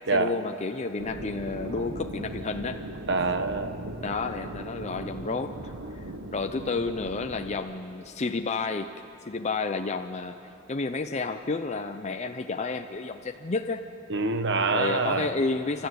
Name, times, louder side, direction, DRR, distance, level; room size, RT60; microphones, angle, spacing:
voice 1, 0.1-2.8 4.0-5.6 6.3-8.9 9.3-10.4 10.7-13.8 14.7-15.9, left 3 dB, 35° left, 6 dB, 0.6 m, -30 dB
sound 1, 1.0-7.6, right 1 dB, 90° right, 1.5 m, -39 dB
voice 2, 3.1-3.8 14.1-15.3, right 3 dB, 60° right, 8 dB, 1.4 m, -25 dB
29.0 x 13.5 x 9.4 m, 3.0 s
head